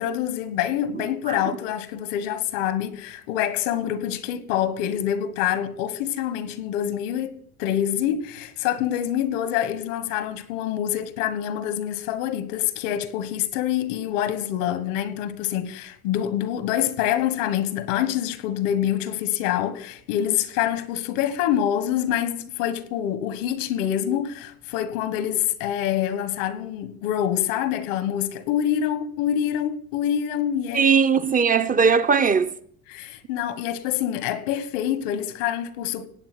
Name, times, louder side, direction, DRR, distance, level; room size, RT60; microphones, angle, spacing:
voice 1, 0.0-30.9 32.9-36.1, left 10 dB, 90° left, 1.5 m, -26 dB
voice 2, 0.9-1.4 30.7-32.5, right 6 dB, 25° right, 0.7 m, -20 dB
17.0 x 8.6 x 6.2 m
cardioid pair, 120°, 36 cm